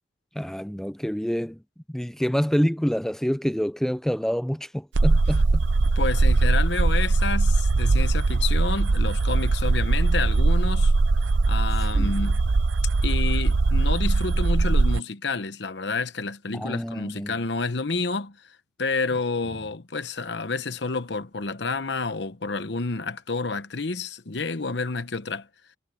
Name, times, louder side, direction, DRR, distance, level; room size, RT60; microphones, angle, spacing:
voice 1, 0.4-1.6 1.9-5.7 11.9-12.1 16.5-17.4, equal, ahead, 0.4 m, -27 dB
sound 1, 5.0-15.0, right 3 dB, 90° right, 0.7 m, -21 dB
voice 2, 6.0-10.9 11.5-12.4 13.0-25.5, left 4 dB, 65° left, 1.0 m, -29 dB
head